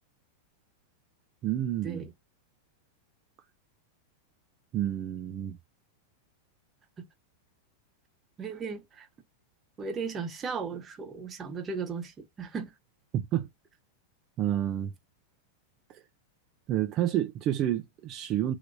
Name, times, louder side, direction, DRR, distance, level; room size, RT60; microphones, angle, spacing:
voice 1, 1.4-2.1 4.7-5.6 13.1-13.5 14.4-14.9 15.9-16.0 16.7-18.6, right 11 dB, 40° right, 0.6 m, -29 dB
voice 2, 8.4-9.1 9.8-12.7, right 5 dB, 25° right, 1.0 m, -36 dB
3.2 x 2.9 x 2.6 m
hypercardioid pair, 120°, 0 cm